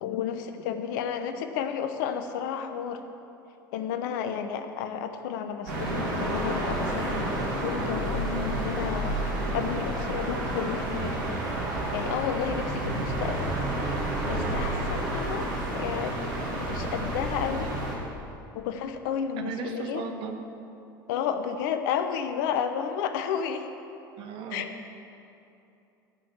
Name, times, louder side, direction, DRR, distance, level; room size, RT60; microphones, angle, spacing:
voice 1, 0.0-3.0 3.7-9.2 9.5-11.4 11.7-13.5 14.3-16.2 16.5-17.7 18.5-20.0 21.1-23.7 24.5-24.7, left 8 dB, 60° left, 9 dB, 0.8 m, -32 dB
sound 1, 5.7-18.0, right 1 dB, 65° right, 2.6 m, -30 dB
voice 2, 19.3-20.4 24.2-24.6, right 5 dB, 45° right, 4 dB, 1.4 m, -36 dB
15.0 x 6.3 x 7.0 m, 2.8 s
figure-of-eight pair, 70°, 12 cm